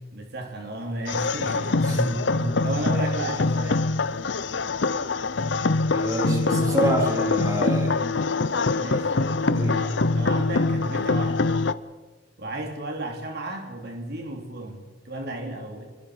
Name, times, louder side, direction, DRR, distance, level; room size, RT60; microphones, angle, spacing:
voice 1, 0.1-2.2 2.6-3.8 6.6-6.8 8.8-9.1 9.7-11.5 12.4-15.9, right 1 dB, 60° right, 2 dB, 3.2 m, -34 dB
sound 1, 1.1-11.7, left 3 dB, 70° left, 0.8 m, -24 dB
voice 2, 1.8-2.6 5.9-8.0 9.4-9.8, right 1 dB, 20° right, 0 dB, 3.9 m, -27 dB
28.0 x 22.0 x 5.0 m, 1.2 s
head